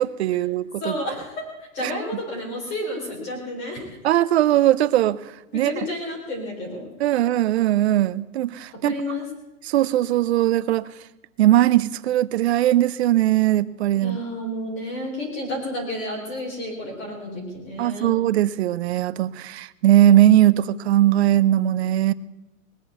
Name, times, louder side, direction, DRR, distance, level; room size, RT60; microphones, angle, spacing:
voice 1, 0.0-1.0 1.8-1.9 4.0-5.2 5.5-5.7 7.0-9.0 9.6-10.9 11.4-14.2 17.8-22.1, right 13 dB, 50° right, 16 dB, 0.7 m, -19 dB
voice 2, 0.8-1.4 1.7-4.0 5.5-6.9 8.8-9.2 13.9-18.1, left 1 dB, 25° left, -1 dB, 4.0 m, -31 dB
20.0 x 7.6 x 8.2 m, 1.0 s
hypercardioid pair, 160°, 42 cm